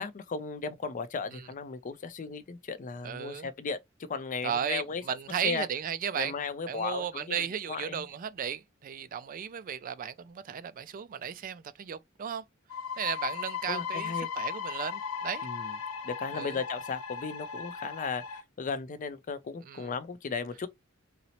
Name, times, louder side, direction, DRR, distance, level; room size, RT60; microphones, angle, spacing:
voice 1, 0.0-3.8 4.1-5.0 5.4-5.7 6.1-7.3 7.7-8.0 13.7-14.3 15.4-15.7 16.0-20.7, left 5 dB, 40° left, 0.4 m, -36 dB
voice 2, 3.0-3.5 4.4-6.3 6.7-12.4 13.0-15.5 16.3-16.6 19.7-19.9, right 8 dB, 40° right, 0.3 m, -35 dB
sound 1, 12.7-18.4, left 6 dB, 80° left, 0.6 m, -37 dB
4.0 x 2.0 x 2.8 m
head